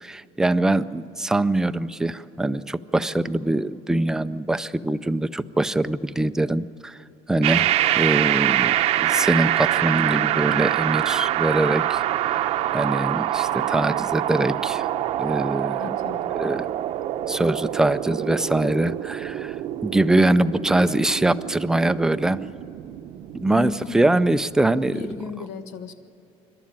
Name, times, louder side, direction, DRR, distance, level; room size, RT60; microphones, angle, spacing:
voice 1, 0.0-7.0 7.3-7.7 7.9-8.7 9.0-12.0 12.3-12.5 12.7-14.8 15.2-15.8 16.4-16.7 17.3-19.6 19.8-22.4 23.3-24.9, right 2 dB, 5° right, 12 dB, 0.4 m, -23 dB
sound 1, 7.4-25.3, right 13 dB, 55° right, 0.7 m, -25 dB
voice 2, 15.8-16.3 23.5-24.3 24.9-25.9, left 7 dB, 75° left, 8 dB, 1.5 m, -35 dB
26.5 x 12.5 x 8.8 m, 2.7 s
cardioid pair, 160°, 12 cm